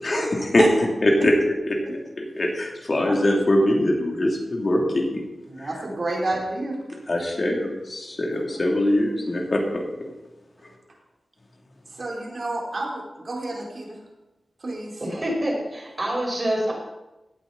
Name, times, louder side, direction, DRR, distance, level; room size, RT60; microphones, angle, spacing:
voice 1, 0.0-1.3 1.7-1.8 2.2-5.2 5.6-5.7 7.1-10.1, left 1 dB, 50° left, 0 dB, 3.1 m, -22 dB
voice 2, 5.5-6.8 8.3-8.4 11.9-14.0 14.6-15.0, right 2 dB, 55° right, -2 dB, 3.9 m, -29 dB
voice 3, 15.0-16.7, right 1 dB, 40° right, -1 dB, 5.3 m, -26 dB
16.5 x 8.8 x 4.2 m, 1.0 s
cardioid pair, 60°, 0 cm